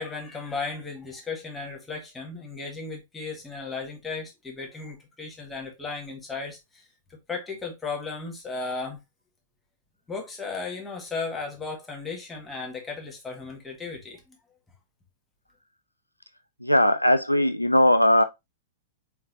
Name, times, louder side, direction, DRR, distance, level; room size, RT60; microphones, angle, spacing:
voice 1, 0.0-6.9 7.3-9.0 10.1-14.4, left 4 dB, 10° left, 1.6 m, -35 dB
voice 2, 16.6-18.2, left 1 dB, 90° left, 0.3 m, -19 dB
4.4 x 3.7 x 2.6 m
figure-of-eight pair, 100°, 0 cm